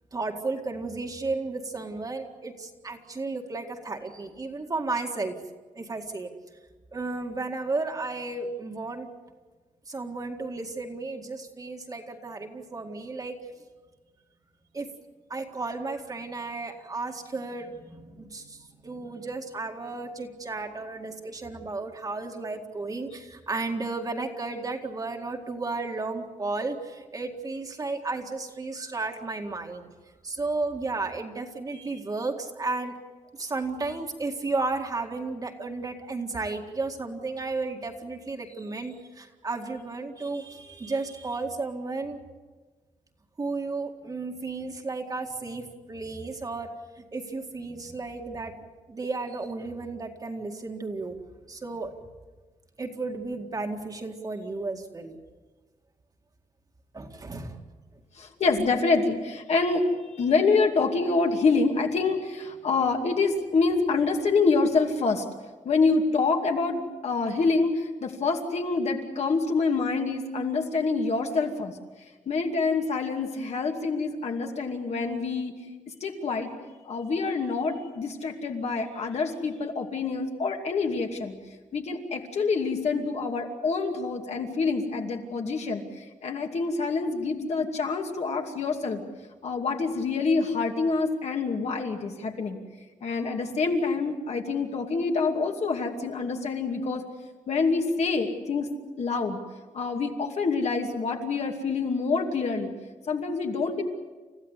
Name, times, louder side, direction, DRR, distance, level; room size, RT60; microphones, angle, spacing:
voice 1, 0.1-5.4 5.8-6.3 6.9-9.1 9.9-13.4 14.7-14.9 15.3-29.9 30.2-32.9 33.4-42.2 43.4-46.7 47.0-48.5 48.9-51.2 51.5-51.9 52.8-55.2 56.9-57.6, right 3 dB, 30° right, 3 dB, 2.0 m, -33 dB
voice 2, 58.2-59.9 60.1-65.2 65.6-71.7 72.3-75.5 76.0-76.5 76.8-81.3 81.7-89.0 89.4-92.6 93.0-97.0 97.5-98.7 99.0-99.4 99.7-102.7 103.1-103.8, left 4 dB, 55° left, 2 dB, 2.6 m, -26 dB
30.0 x 15.0 x 8.3 m, 1.3 s
wide cardioid pair, 160°, 13 cm